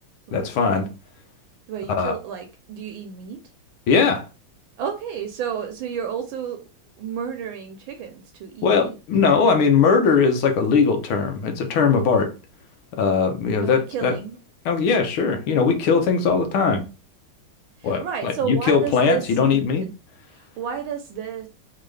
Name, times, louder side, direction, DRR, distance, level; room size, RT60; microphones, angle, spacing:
voice 1, 0.3-0.9 1.9-2.1 3.9-4.3 8.6-12.3 13.0-14.2 14.7-16.8 17.8-19.8, left 5 dB, 90° left, 1.8 m, -20 dB
voice 2, 1.7-3.4 4.8-6.6 7.0-9.0 13.6-14.4 17.8-19.9 20.3-21.5, right 8 dB, 75° right, 1.4 m, -31 dB
4.3 x 3.7 x 3.2 m
omnidirectional pair, 2.3 m